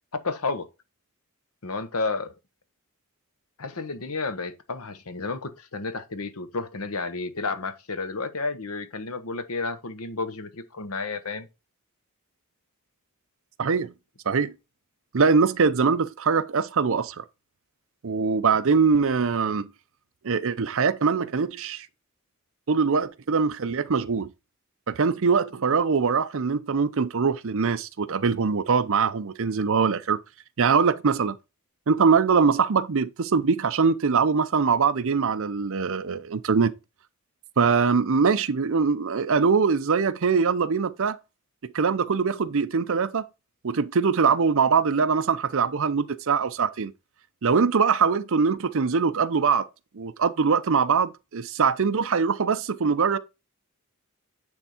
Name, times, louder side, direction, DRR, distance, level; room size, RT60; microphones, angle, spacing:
voice 1, 0.2-0.6 1.6-2.3 3.6-11.5, left 3 dB, 75° left, 1.1 m, -31 dB
voice 2, 13.6-13.9 14.3-14.5 15.1-17.2 18.0-19.7 20.2-21.9 22.7-24.3 24.9-30.2 30.6-31.4 31.9-36.7 37.6-41.2 41.7-43.3 43.6-46.9 47.4-49.7 49.9-53.2, right 5 dB, 60° right, 0.6 m, -22 dB
9.7 x 3.5 x 4.3 m
head